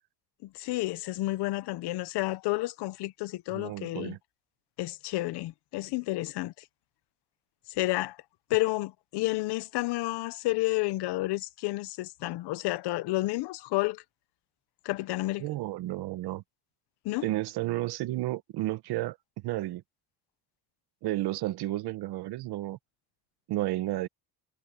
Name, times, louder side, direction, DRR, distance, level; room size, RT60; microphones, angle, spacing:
voice 1, 0.4-4.2 4.8-6.5 7.7-8.2 8.5-14.0 14.8-15.4 17.0-17.3, left 19 dB, 80° left, 1.0 m, -30 dB
voice 2, 3.5-4.2 15.4-16.4 17.2-19.2 19.4-19.8 21.0-22.8 23.5-24.1, right 16 dB, 70° right, 1.2 m, -32 dB
cardioid pair, 120°, 40 cm